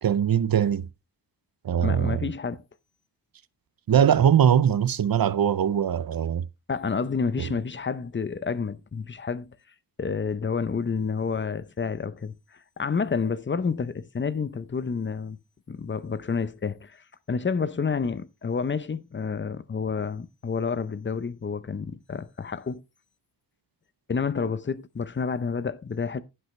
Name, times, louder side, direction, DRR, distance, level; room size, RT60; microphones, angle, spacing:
voice 1, 0.0-0.9 1.6-2.2 3.9-6.5 7.4-7.5, right 9 dB, 55° right, 0.7 m, -21 dB
voice 2, 1.8-2.6 6.7-9.5 10.0-12.3 12.8-15.4 15.7-22.8 24.1-26.2, left 5 dB, 30° left, 0.6 m, -29 dB
16.0 x 5.5 x 3.1 m
wide cardioid pair, 135°, 41 cm